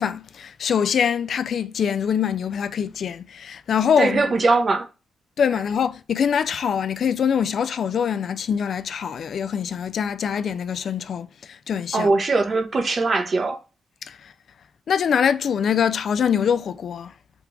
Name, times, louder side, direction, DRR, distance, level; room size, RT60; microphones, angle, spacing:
voice 1, 0.0-4.2 5.4-12.1 14.0-14.3 14.9-17.1, left 7 dB, 65° left, 0.3 m, -24 dB
voice 2, 4.0-4.9 11.9-13.6, right 3 dB, 45° right, 0.7 m, -21 dB
3.6 x 2.4 x 4.5 m
cardioid pair, 75°, 0 cm